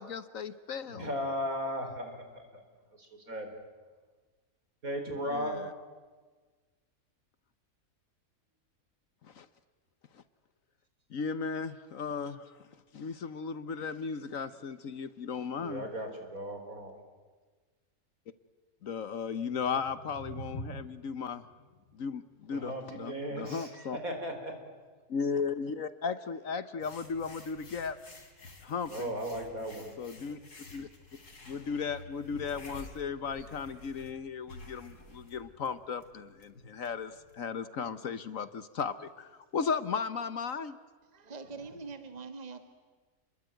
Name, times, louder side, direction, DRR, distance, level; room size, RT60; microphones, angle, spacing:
voice 1, 0.0-1.1 9.3-9.5 11.1-12.5 12.9-15.8 18.8-21.4 21.9-22.7 23.0-23.1 23.4-24.0 25.1-28.0 28.6-28.9 30.0-30.4 30.7-30.9 31.5-40.8, left 5 dB, 60° left, 13 dB, 1.4 m, -35 dB
voice 2, 0.9-3.6 4.8-5.6 15.6-17.0 22.5-24.6 28.9-29.9 41.6-41.8, equal, 65° right, 5 dB, 4.8 m, -37 dB
sound 1, 19.4-25.5, equal, 25° left, 4.3 m, -48 dB
sound 2, 26.8-37.3, left 2 dB, 90° left, 3.9 m, -51 dB
voice 3, 41.1-42.6, right 4 dB, 25° right, 8 dB, 1.8 m, -43 dB
29.5 x 22.0 x 9.1 m, 1.4 s
omnidirectional pair, 1.6 m